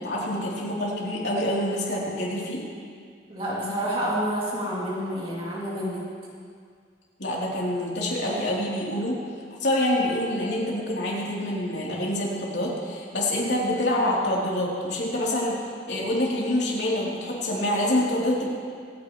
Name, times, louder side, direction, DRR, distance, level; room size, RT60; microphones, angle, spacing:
voice 1, 0.0-2.6 7.2-9.2 9.6-15.6 15.9-18.5, left 1 dB, 75° left, -5 dB, 3.4 m, -26 dB
voice 2, 3.3-6.0, equal, 35° right, -7 dB, 2.9 m, -28 dB
26.5 x 9.5 x 3.2 m, 2.1 s
head